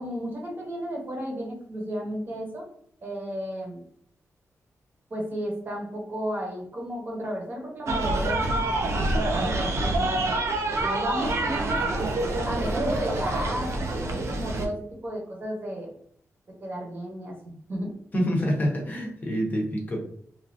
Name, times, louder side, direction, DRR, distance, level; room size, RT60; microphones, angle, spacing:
voice 1, 0.0-2.6 3.0-3.8 5.1-10.4 10.8-12.1 12.4-15.9 16.6-17.9, equal, 35° right, 0 dB, 0.8 m, -33 dB
sound 1, 7.9-14.7, right 2 dB, 60° right, 0.4 m, -26 dB
voice 2, 18.1-20.0, equal, 30° left, 0 dB, 0.7 m, -26 dB
3.1 x 2.3 x 2.5 m, 0.64 s
wide cardioid pair, 170°, 6 cm